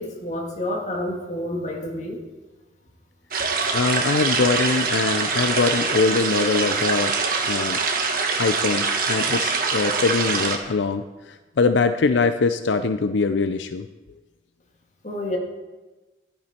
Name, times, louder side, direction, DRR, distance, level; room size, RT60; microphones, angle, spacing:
voice 1, 0.0-2.2 15.0-15.4, left 1 dB, 40° left, 1 dB, 2.1 m, -29 dB
sound 1, 3.3-10.6, right 4 dB, 50° right, 1.5 m, -24 dB
voice 2, 3.7-7.2 7.4-7.8 8.4-13.9, left 4 dB, 80° left, 10 dB, 0.5 m, -22 dB
15.0 x 11.5 x 4.3 m, 1.2 s
head